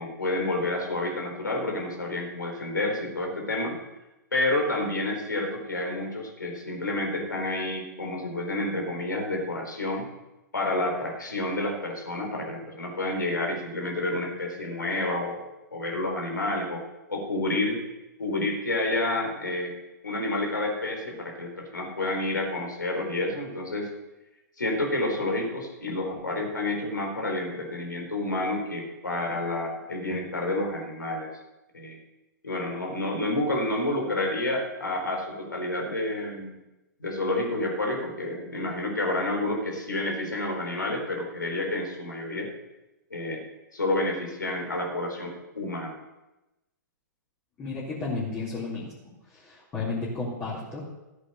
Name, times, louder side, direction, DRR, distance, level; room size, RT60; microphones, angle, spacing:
voice 1, 0.0-3.8 4.3-10.1 10.5-15.5 15.7-16.8 17.1-17.8 18.2-19.7 20.0-23.9 24.6-31.3 31.7-32.0 32.4-36.6 37.0-42.5 43.1-43.4 43.7-46.0, left 2 dB, 85° left, 1 dB, 4.2 m, -29 dB
voice 2, 47.6-48.9 49.3-50.8, left 3 dB, 20° left, -7 dB, 3.5 m, -32 dB
14.0 x 8.4 x 6.6 m, 1.0 s
figure-of-eight pair, 110°, 10 cm